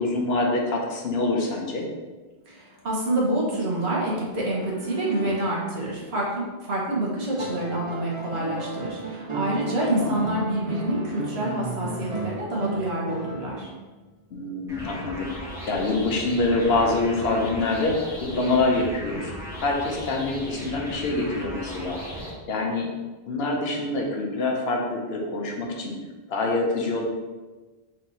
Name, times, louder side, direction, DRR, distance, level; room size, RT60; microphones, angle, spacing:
voice 1, 0.0-1.9 9.8-10.2 14.3-19.3 19.6-22.0 22.5-22.9 23.3-26.0 26.3-27.1, left 2 dB, 70° left, 0 dB, 1.0 m, -25 dB
sound 1, 2.5-5.3 8.3-9.5, equal, 20° left, 0.6 m, -43 dB
voice 2, 2.5-13.7, right 1 dB, 75° right, -4 dB, 1.4 m, -27 dB
sound 2, 7.4-13.8 15.3-15.4, right 3 dB, 40° right, 0.5 m, -34 dB
sound 3, 14.7-22.3, equal, 5° right, 1.0 m, -36 dB
4.1 x 2.8 x 4.1 m, 1.3 s
omnidirectional pair, 1.1 m